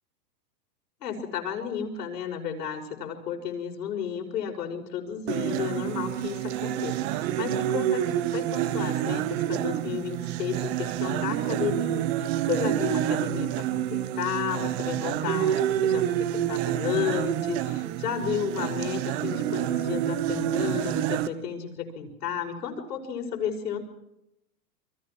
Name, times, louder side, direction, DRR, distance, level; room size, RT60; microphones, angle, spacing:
voice 1, 1.0-23.8, left 8 dB, 75° left, 3 dB, 5.9 m, -33 dB
sound 1, 5.3-21.3, right 12 dB, 40° right, 1.4 m, -28 dB
29.5 x 23.5 x 4.6 m, 0.85 s
hypercardioid pair, 145°, 48 cm